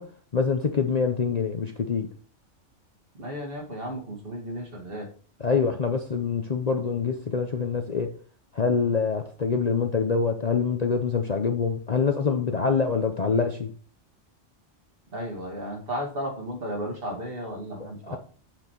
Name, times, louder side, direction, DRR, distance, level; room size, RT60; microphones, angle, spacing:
voice 1, 0.0-2.1 5.4-8.1 8.5-13.7 17.8-18.2, left 5 dB, 40° left, 0.7 m, -25 dB
voice 2, 3.1-5.1 15.1-18.2, equal, 50° right, 2.3 m, -34 dB
8.0 x 6.7 x 4.5 m
omnidirectional pair, 1.3 m